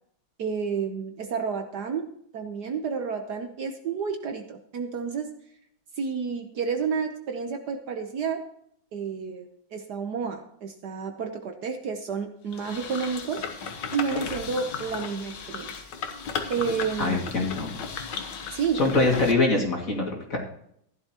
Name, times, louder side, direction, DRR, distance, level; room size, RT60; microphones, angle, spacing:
voice 1, 0.4-5.4 6.0-8.5 8.9-15.7 16.5-17.2 18.5-19.0, right 6 dB, 60° right, 5 dB, 1.4 m, -30 dB
sound 1, 12.5-19.3, left 6 dB, 65° left, 1.7 m, -35 dB
voice 2, 17.0-17.7 18.7-20.4, left 2 dB, 40° left, -1 dB, 2.7 m, -24 dB
15.5 x 11.0 x 2.9 m, 0.70 s
omnidirectional pair, 2.2 m